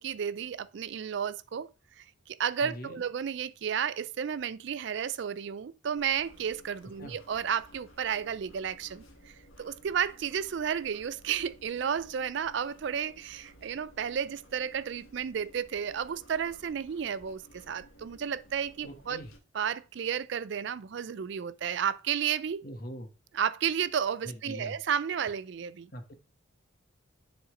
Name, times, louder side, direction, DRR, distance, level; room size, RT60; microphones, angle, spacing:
voice 1, 0.0-1.7 2.0-19.2 19.5-22.6 23.3-25.9, right 8 dB, 55° right, 0.3 m, -32 dB
voice 2, 2.6-3.0 7.0-7.2 18.8-19.3 22.6-23.1 24.2-24.8 25.9-26.1, equal, 45° left, 1.5 m, -42 dB
sound 1, 6.0-19.4, equal, 85° left, 1.6 m, -56 dB
9.8 x 4.2 x 3.8 m
head